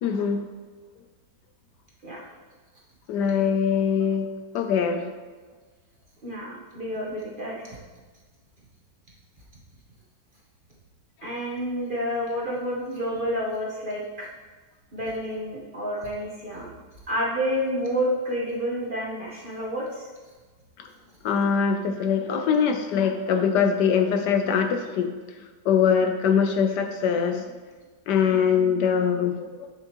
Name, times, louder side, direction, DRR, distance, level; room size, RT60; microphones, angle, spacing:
voice 1, 0.0-0.4 3.1-4.3 4.5-5.0 20.8-20.9 21.2-25.1 25.6-27.4 28.1-29.7, left 7 dB, 75° left, 6 dB, 1.2 m, -22 dB
voice 2, 6.2-7.8 11.2-14.3 14.9-16.7 17.1-20.0, equal, 35° right, -4 dB, 1.1 m, -29 dB
7.8 x 7.0 x 3.0 m, 1.4 s
omnidirectional pair, 1.9 m